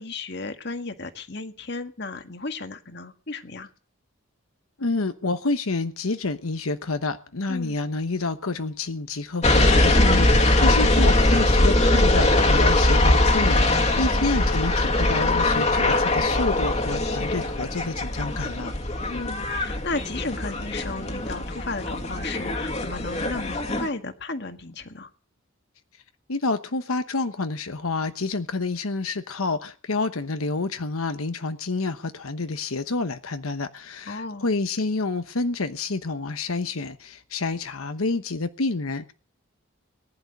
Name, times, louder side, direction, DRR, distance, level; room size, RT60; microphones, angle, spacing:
voice 1, 0.0-3.7 7.5-7.8 14.0-14.3 19.1-25.1 34.1-34.5, left 3 dB, 50° left, 1.8 m, -34 dB
voice 2, 4.8-18.7 26.3-39.1, left 3 dB, 80° left, 1.1 m, -28 dB
sound 1, 9.4-23.9, left 2 dB, 30° left, 2.1 m, -21 dB
19.5 x 11.0 x 6.6 m
head